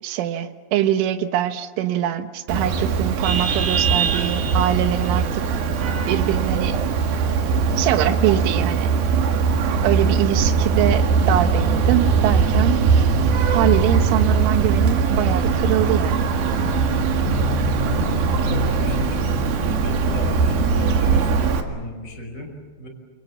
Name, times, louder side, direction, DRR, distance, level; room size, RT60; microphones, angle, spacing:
voice 1, 0.0-5.4 5.8-6.8 7.7-8.9 9.8-12.8 13.5-16.3, right 11 dB, 85° right, 8 dB, 3.8 m, -23 dB
Vehicle horn car horn honking, 2.5-21.6, right 5 dB, 60° right, 3.3 m, -20 dB
voice 2, 17.7-19.4 19.7-22.9, equal, 15° left, 2 dB, 5.5 m, -35 dB
29.0 x 25.0 x 7.4 m, 1.3 s
omnidirectional pair, 5.5 m